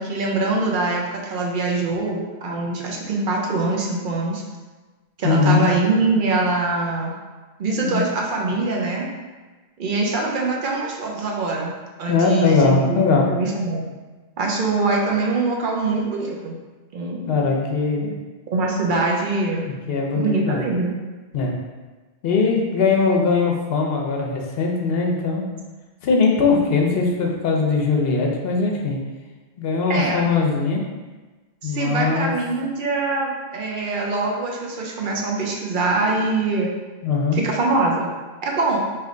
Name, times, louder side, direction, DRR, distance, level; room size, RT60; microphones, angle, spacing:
voice 1, 0.0-4.4 5.2-7.1 7.6-9.1 9.8-13.9 14.4-16.5 16.9-17.5 18.5-19.7 20.1-21.0 29.9-30.3 31.6-36.7 37.3-38.1 38.4-38.8, right 3 dB, 55° right, -1 dB, 0.8 m, -23 dB
voice 2, 5.2-5.7 7.8-8.0 12.1-13.3 17.3-18.1 19.7-20.6 21.3-21.5 22.2-25.4 26.0-29.0 29.6-30.8 31.6-32.3 37.0-37.4, left 4 dB, 70° left, 0 dB, 0.9 m, -20 dB
3.4 x 2.8 x 3.7 m, 1.3 s
omnidirectional pair, 1.1 m